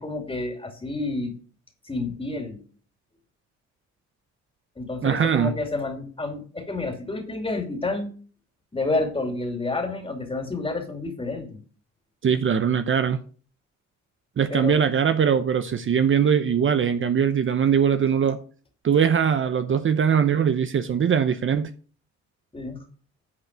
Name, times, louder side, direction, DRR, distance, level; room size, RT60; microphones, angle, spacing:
voice 1, 0.0-1.4 1.9-2.6 4.8-8.1 8.7-11.6 14.5-14.8 22.5-22.8, left 2 dB, 20° left, 2.7 m, -29 dB
voice 2, 5.0-5.5 12.2-13.2 14.4-18.4 18.8-21.7, right 7 dB, 40° right, 0.7 m, -21 dB
9.8 x 4.7 x 6.6 m
cardioid pair, 90°, 30 cm